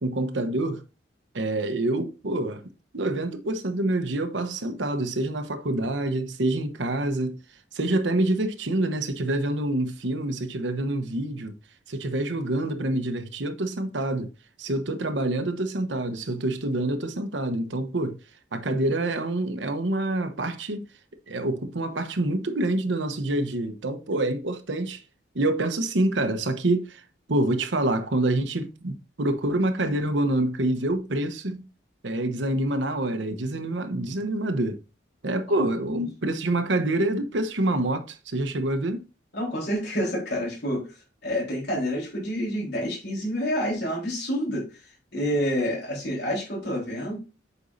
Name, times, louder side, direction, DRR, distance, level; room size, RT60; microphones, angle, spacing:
voice 1, 0.0-0.8 1.3-2.6 2.9-7.4 7.7-11.6 11.9-14.3 14.6-18.2 18.5-20.9 21.3-25.0 25.3-27.0 27.3-31.7 32.0-34.8 35.2-39.0, right 1 dB, 85° right, 1.0 m, -26 dB
voice 2, 39.3-40.9 41.2-44.8 45.1-47.2, equal, 65° left, 3.8 m, -28 dB
8.1 x 5.3 x 2.6 m
head